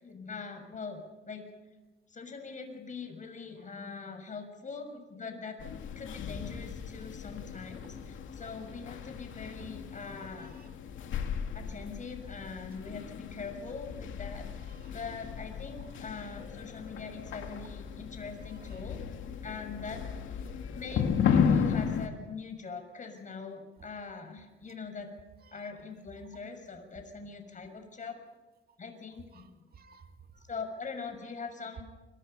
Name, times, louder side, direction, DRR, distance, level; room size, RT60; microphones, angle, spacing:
voice 1, 0.0-1.5 2.1-5.6 5.9-10.5 11.5-14.5 14.9-19.0 19.4-20.0 20.7-25.1 25.5-28.2 28.8-29.6 30.5-31.8, left 4 dB, 40° left, 6 dB, 6.5 m, -42 dB
sound 1, 5.6-22.1, left 7 dB, 75° left, 2.6 m, -34 dB
voice 2, 10.4-10.7 14.6-14.9 18.4-18.8 19.9-20.1 20.9-21.6 23.8-23.9 25.4-25.7 29.3-30.4, right 6 dB, 50° right, 6 dB, 2.4 m, -57 dB
28.5 x 24.0 x 5.6 m, 1.1 s
cardioid pair, 90°, 20 cm